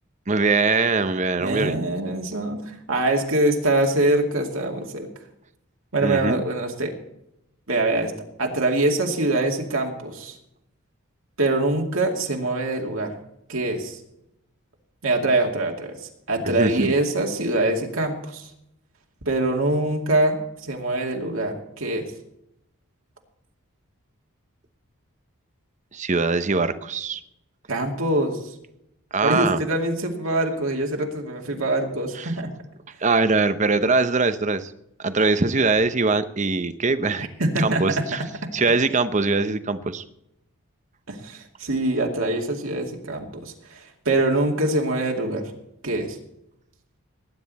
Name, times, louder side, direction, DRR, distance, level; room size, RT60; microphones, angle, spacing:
voice 1, 0.3-1.8 6.0-6.4 16.4-16.9 25.9-27.2 29.1-29.6 32.1-32.3 33.0-34.7 35.0-37.3 37.6-38.2 38.5-40.0, right 3 dB, 35° right, 12 dB, 0.8 m, -22 dB
voice 2, 1.4-5.1 5.9-7.0 7.7-8.1 8.4-10.4 11.4-13.2 13.5-14.0 15.0-16.0 16.3-18.5 19.3-22.1 27.7-28.5 29.2-32.5 37.4-37.8 38.4-38.5 41.1-45.5 45.8-46.2, right 2 dB, 65° right, 1 dB, 2.4 m, -24 dB
19.5 x 9.9 x 4.2 m, 0.81 s
head